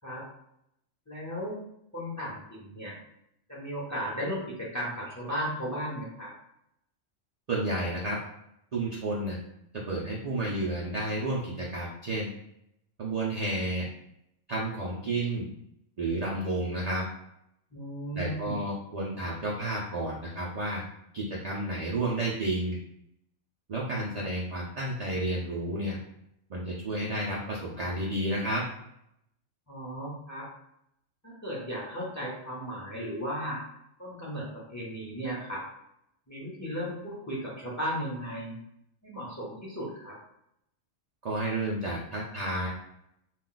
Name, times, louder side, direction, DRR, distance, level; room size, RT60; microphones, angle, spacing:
voice 1, 1.1-1.6 1.9-2.9 3.5-6.3 17.7-18.6 29.7-30.5 31.2-33.6 34.0-35.6 36.3-38.6 39.0-40.2, equal, 15° left, -6 dB, 0.6 m, -35 dB
voice 2, 7.5-8.2 8.7-9.4 9.9-12.3 13.0-13.9 14.5-15.5 16.0-17.0 18.1-20.8 21.1-22.8 23.7-26.0 26.5-28.6 41.2-42.7, right 1 dB, 60° right, -5 dB, 0.4 m, -31 dB
2.4 x 2.3 x 3.8 m, 0.77 s
omnidirectional pair, 1.3 m